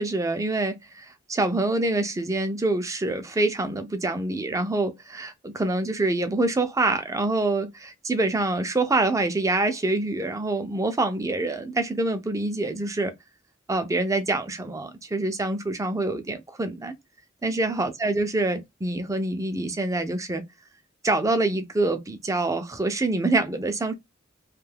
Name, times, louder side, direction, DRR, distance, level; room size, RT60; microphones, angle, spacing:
voice 1, 0.0-13.1 13.7-16.9 17.4-20.4 21.0-23.9, right 2 dB, 15° right, 0.4 m, -26 dB
2.6 x 2.2 x 3.3 m
head